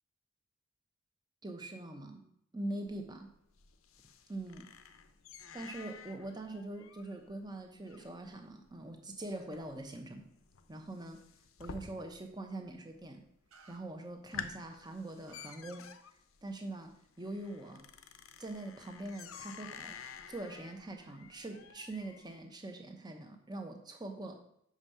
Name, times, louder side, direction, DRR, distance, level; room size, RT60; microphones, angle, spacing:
voice 1, 1.4-2.2 2.5-3.3 4.3-4.7 5.5-10.2 10.7-11.2 11.6-13.2 13.7-15.9 16.4-16.9 17.2-17.8 18.4-24.3, right 2 dB, 20° right, 4 dB, 0.9 m, -43 dB
sound 1, 2.9-12.4 12.7-13.3 13.7-13.8 14.1-22.4, left 6 dB, 75° left, 0.6 m, -51 dB
Raven Caw, 13.5-13.8 15.2-15.5, right 4 dB, 90° right, 1.2 m, -57 dB
6.2 x 5.3 x 5.5 m, 0.74 s
head